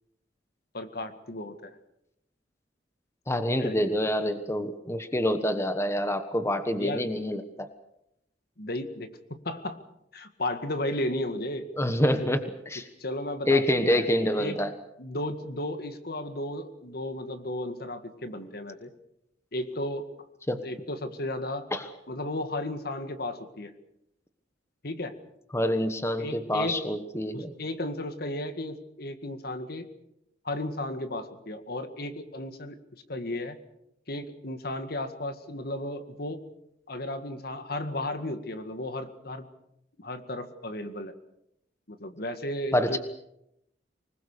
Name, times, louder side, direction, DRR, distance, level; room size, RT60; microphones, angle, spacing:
voice 1, 0.7-1.7 3.6-3.8 6.8-7.1 8.6-9.8 10.1-11.7 12.2-12.3 13.0-14.1 14.3-14.6 15.0-18.9 19.5-20.1 20.6-21.7 22.1-23.7 24.8-25.1 26.2-26.8 27.3-29.9 30.4-32.8 33.1-33.6 34.1-36.4 36.9-39.5 40.0-41.1 41.9-43.0, left 1 dB, 55° left, 9 dB, 2.0 m, -34 dB
voice 2, 3.3-7.7 11.8-12.4 12.7-12.8 13.5-14.7 20.5-20.6 21.7-21.9 25.5-27.5 42.7-43.0, left 1 dB, 15° left, 9 dB, 1.2 m, -26 dB
25.0 x 20.5 x 6.7 m, 0.81 s
head